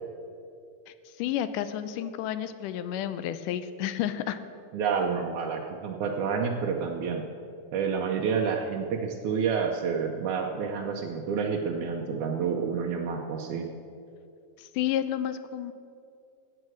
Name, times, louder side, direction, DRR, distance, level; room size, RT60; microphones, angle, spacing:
voice 1, 0.9-4.4 14.6-15.7, left 11 dB, 85° left, 12 dB, 2.1 m, -31 dB
voice 2, 4.7-7.3 7.7-13.7, right 6 dB, 75° right, 1 dB, 2.1 m, -29 dB
14.0 x 9.0 x 6.3 m, 2.5 s
omnidirectional pair, 3.7 m